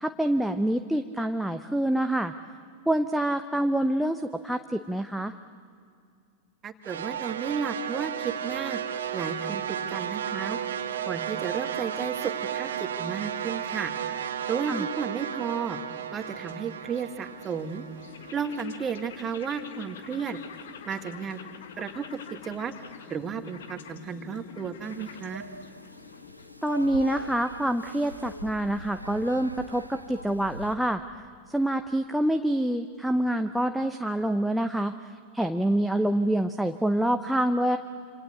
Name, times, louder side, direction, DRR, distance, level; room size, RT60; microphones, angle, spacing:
voice 1, 0.0-2.3 2.9-5.3 14.7-14.8 26.6-31.0 31.5-34.9 35.3-37.8, right 1 dB, ahead, 6 dB, 0.8 m, -26 dB
voice 2, 6.6-8.8 9.1-10.6 11.1-13.9 14.5-15.8 16.1-17.9 18.3-20.4 20.9-21.4 21.8-22.0 22.4-22.7 23.1-25.5, right 6 dB, 25° right, 8 dB, 1.8 m, -33 dB
sound 1, 6.8-19.1, right 9 dB, 65° right, 1.3 m, -34 dB
sound 2, 15.1-28.5, left 7 dB, 60° left, 1.6 m, -47 dB
sound 3, 24.8-30.8, equal, 90° right, 1.1 m, -42 dB
27.0 x 26.5 x 8.2 m, 2.4 s
figure-of-eight pair, 90°, 0 cm